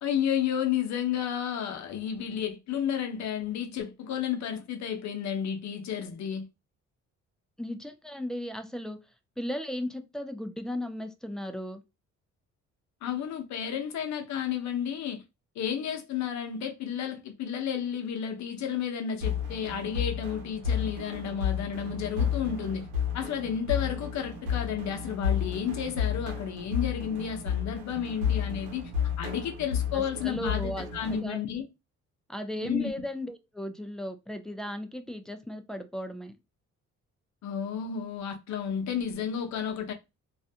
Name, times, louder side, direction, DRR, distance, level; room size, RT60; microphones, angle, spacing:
voice 1, 0.0-6.5 13.0-15.2 15.6-22.9 23.1-28.9 29.2-31.7 32.6-32.9 37.4-39.9, left 8 dB, 65° left, 0.6 m, -32 dB
voice 2, 7.6-9.0 9.4-11.8 29.9-31.4 32.3-36.3, left 1 dB, ahead, 0.4 m, -36 dB
sound 1, 19.2-31.2, left 7 dB, 90° right, 0.9 m, -32 dB
2.4 x 2.1 x 2.6 m
cardioid pair, 90°, 30 cm